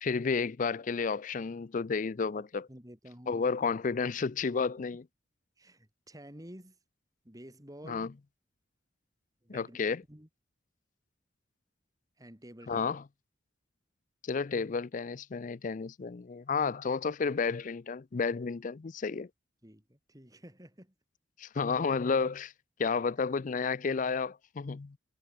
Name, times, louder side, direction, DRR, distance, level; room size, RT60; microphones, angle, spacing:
voice 1, 0.0-2.7 3.3-5.0 7.8-8.1 9.5-10.0 12.7-13.0 14.2-19.3 21.4-22.5 22.8-25.0, left 5 dB, 45° left, 0.4 m, -31 dB
voice 2, 2.3-3.5 5.6-6.8 7.2-8.1 9.4-10.3 12.2-12.9 19.6-20.9, equal, 20° right, 4.1 m, -51 dB
head